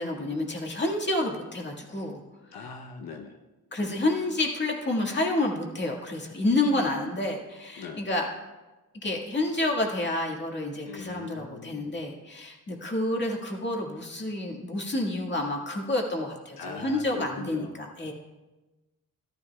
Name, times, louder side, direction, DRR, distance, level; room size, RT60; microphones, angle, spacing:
voice 1, 0.0-2.2 2.5-2.7 3.7-8.3 9.0-18.1, left 2 dB, 30° left, 0 dB, 1.9 m, -29 dB
voice 2, 2.5-3.4 3.8-4.0 6.5-6.9 7.8-8.0 10.9-11.9 16.6-17.7, left 5 dB, 80° left, 2 dB, 0.9 m, -41 dB
14.0 x 13.5 x 2.4 m, 1.1 s
cardioid pair, 95°, 36 cm